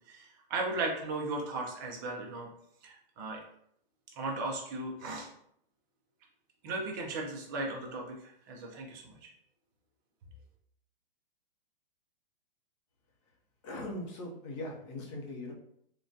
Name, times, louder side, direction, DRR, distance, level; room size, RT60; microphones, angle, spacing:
voice 1, 0.1-2.5 2.8-3.4 4.2-5.3 6.6-9.3, right 2 dB, 20° right, 0 dB, 0.4 m, -36 dB
voice 2, 13.6-15.5, left 1 dB, 30° left, -1 dB, 0.7 m, -40 dB
3.8 x 2.2 x 2.6 m, 0.69 s
hypercardioid pair, 160°, 29 cm